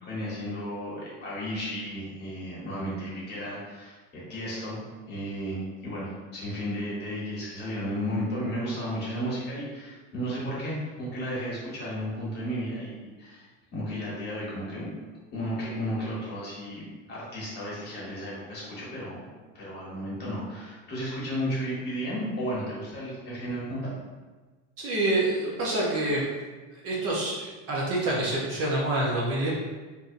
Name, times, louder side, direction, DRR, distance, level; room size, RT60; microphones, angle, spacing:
voice 1, 0.0-14.9 15.3-24.0, equal, 30° left, -7 dB, 1.2 m, -34 dB
voice 2, 24.8-26.3 26.8-29.5, right 1 dB, 40° right, -5 dB, 0.7 m, -27 dB
3.8 x 2.7 x 2.5 m, 1.3 s
cardioid pair, 160°, 35 cm